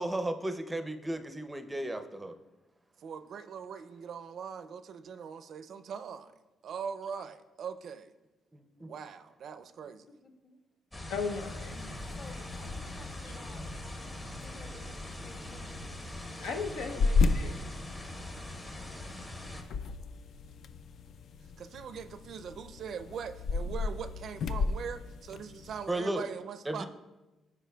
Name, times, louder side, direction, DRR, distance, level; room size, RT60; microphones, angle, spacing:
voice 1, 0.0-2.3 8.5-8.9 25.9-26.2 26.7-26.9, right 1 dB, 15° right, 8 dB, 0.5 m, -34 dB
voice 2, 3.0-6.3 6.6-8.1 8.8-10.1 21.6-26.9, right 7 dB, 65° right, 11 dB, 0.4 m, -41 dB
sound 1, 10.9-19.6, left 1 dB, 25° left, 1.0 m, -42 dB
voice 3, 11.1-11.9 16.4-17.5, left 5 dB, 90° left, 5 dB, 0.7 m, -36 dB
Mini-Fridge Open and Close, 11.2-26.0, left 4 dB, 65° left, 0.3 m, -35 dB
voice 4, 12.2-13.7 14.3-16.4, left 2 dB, 40° left, 4 dB, 1.2 m, -54 dB
13.5 x 4.9 x 2.3 m, 1.1 s
cardioid pair, 90°, 0 cm